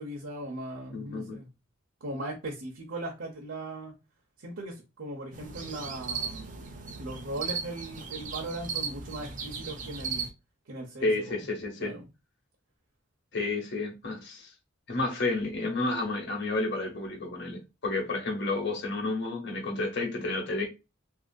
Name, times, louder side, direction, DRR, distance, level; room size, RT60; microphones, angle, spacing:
voice 1, 0.0-1.5 2.0-3.9 4.4-6.6 7.0-10.3 10.7-11.4 11.8-12.0, right 1 dB, 75° right, 0.8 m, -38 dB
voice 2, 0.9-1.4 11.0-12.0 13.3-14.5 14.9-20.7, left 2 dB, 55° left, 1.0 m, -31 dB
sound 1, 5.3-10.3, right 5 dB, 40° right, 0.5 m, -37 dB
2.9 x 2.7 x 2.5 m
head